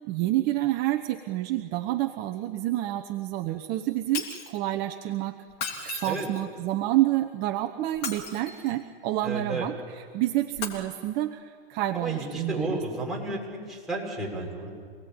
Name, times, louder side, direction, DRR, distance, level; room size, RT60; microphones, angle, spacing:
voice 1, 0.1-5.4 5.8-12.8, right 15 dB, 35° right, 6 dB, 1.0 m, -28 dB
Shatter, 4.1-4.6 5.5-6.5 7.9-8.8 10.5-10.7, left 5 dB, 35° left, 3.5 m, -35 dB
voice 2, 9.2-9.7 11.9-14.7, right 2 dB, ahead, -4 dB, 6.1 m, -32 dB
27.5 x 18.5 x 8.9 m, 2.1 s
hypercardioid pair, 130°, 29 cm